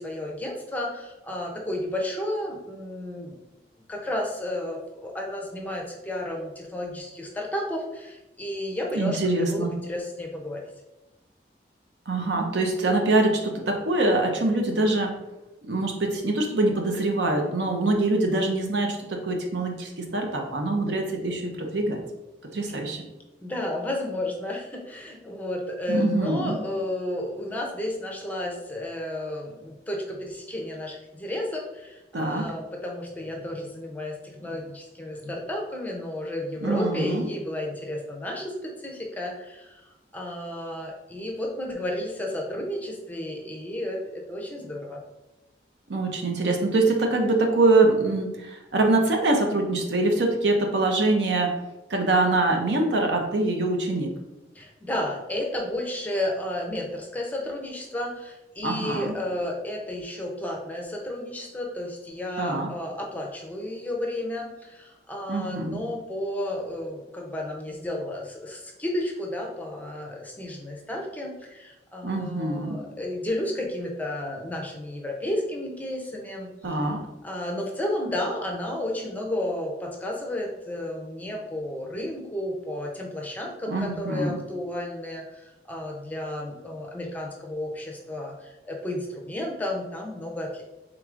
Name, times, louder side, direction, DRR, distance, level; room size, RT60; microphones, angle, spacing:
voice 1, 0.0-3.4 3.9-10.6 23.4-45.0 54.5-76.9 77.2-90.6, left 1 dB, 10° left, 0 dB, 0.5 m, -32 dB
voice 2, 8.9-9.7 12.1-15.1 15.7-22.0 22.5-23.0 25.9-26.6 32.1-32.5 36.6-37.3 45.9-51.5 51.9-54.1 58.6-59.2 62.4-62.7 65.3-65.8 72.0-72.8 76.6-77.1 83.7-84.4, right 2 dB, 75° right, 2 dB, 0.7 m, -24 dB
4.7 x 3.6 x 2.4 m, 0.98 s
head